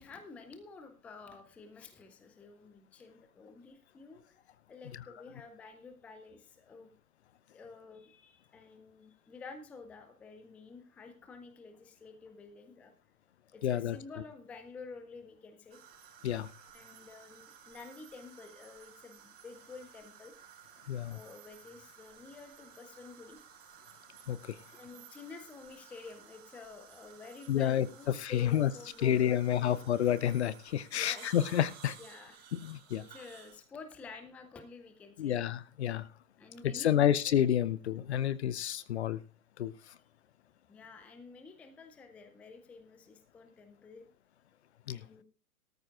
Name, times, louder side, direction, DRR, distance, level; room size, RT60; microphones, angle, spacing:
voice 1, 0.0-4.3 4.7-6.9 7.5-12.9 13.5-15.8 16.7-20.3 21.1-23.4 24.7-29.8 30.9-31.3 32.0-32.4 32.9-35.4 36.4-37.3 38.2-38.3 40.7-44.1 44.9-45.2, left 4 dB, 5° left, 8 dB, 0.5 m, -50 dB
voice 2, 13.6-14.0 16.2-16.5 20.9-21.2 24.3-24.6 27.5-27.9 28.2-28.7 29.0-32.0 32.5-33.0 35.2-36.1 36.6-39.2 39.6-39.7 44.9-45.0, left 10 dB, 50° left, 17 dB, 0.7 m, -29 dB
sound 1, 15.7-33.6, right 8 dB, 20° right, 5.0 m, -55 dB
18.0 x 13.5 x 2.5 m, 0.37 s
figure-of-eight pair, 115°, 42 cm